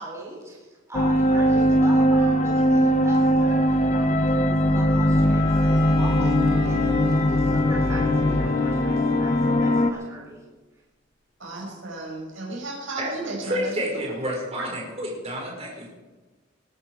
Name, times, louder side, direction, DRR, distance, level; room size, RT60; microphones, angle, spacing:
voice 1, 0.0-10.4, right 1 dB, 15° right, -3 dB, 4.1 m, -39 dB
sound 1, 0.9-9.9, equal, 35° left, 0.8 m, -20 dB
Bowed string instrument, 5.2-10.0, equal, 50° left, 6.0 m, -40 dB
voice 2, 11.4-13.7, right 2 dB, 75° right, -1 dB, 5.9 m, -34 dB
voice 3, 13.0-15.9, equal, 30° right, -1 dB, 5.0 m, -30 dB
21.0 x 12.5 x 4.8 m, 1.2 s
head